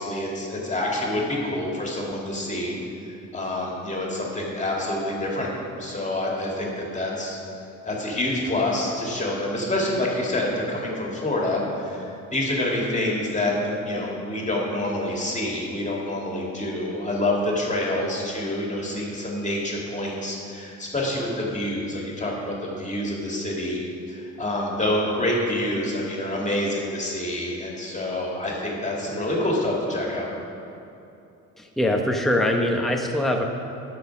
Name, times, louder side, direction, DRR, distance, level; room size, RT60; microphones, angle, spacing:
voice 1, 0.0-2.7 3.3-5.5 5.8-7.4 7.9-23.8 24.1-30.3, left 1 dB, 25° left, -3 dB, 2.4 m, -27 dB
voice 2, 31.6-33.4, left 1 dB, ahead, 1 dB, 0.9 m, -23 dB
9.4 x 6.4 x 6.0 m, 2.8 s
cardioid pair, 90°, 30 cm